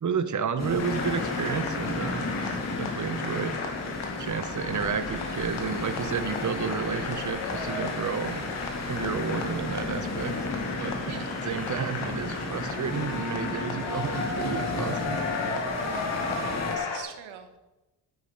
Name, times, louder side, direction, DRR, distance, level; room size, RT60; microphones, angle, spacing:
voice 1, 0.0-3.5 4.1-8.5 8.9-10.3 10.8-15.2, right 6 dB, 40° right, 10 dB, 1.0 m, -31 dB
sound 1, 0.6-16.8, left 2 dB, 35° left, 2.6 m, -34 dB
sound 2, 0.8-17.0, left 4 dB, 80° left, 2.1 m, -34 dB
voice 2, 16.7-17.6, right 9 dB, 85° right, 7 dB, 1.5 m, -44 dB
11.0 x 8.5 x 5.5 m, 1.1 s
supercardioid pair, 55°, 48 cm